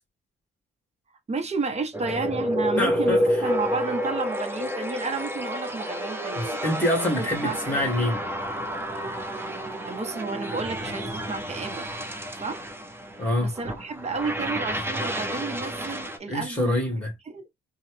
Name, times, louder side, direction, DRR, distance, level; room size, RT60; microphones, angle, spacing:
voice 1, 1.3-6.6 7.1-7.8 9.9-11.9 12.3-12.7 13.4-16.8 17.3-17.4, right 4 dB, 35° right, 1.1 m, -31 dB
sound 1, 1.9-16.2, equal, 10° right, 0.9 m, -30 dB
voice 2, 2.8-3.3 6.4-8.3 13.2-13.5 16.3-17.1, left 1 dB, 5° left, 2.4 m, -25 dB
4.1 x 2.4 x 3.3 m
cardioid pair, 90°, 20 cm